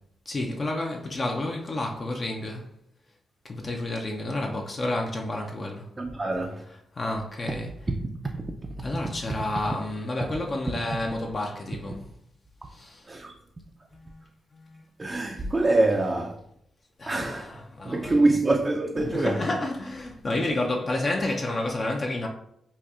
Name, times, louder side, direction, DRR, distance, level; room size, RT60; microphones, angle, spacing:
voice 1, 0.3-2.7 3.4-5.9 6.9-7.7 8.8-12.0 12.7-13.1 13.9-14.3 14.5-14.9 17.0-18.4 19.0-22.3, left 2 dB, 45° left, 0.4 m, -30 dB
voice 2, 6.0-6.6 8.3-8.4 9.0-9.1 13.1-13.3 15.0-16.4 17.1-17.5 17.8-19.4, right 2 dB, 30° right, 0.4 m, -25 dB
4.1 x 2.2 x 2.4 m
supercardioid pair, 50°, 0 cm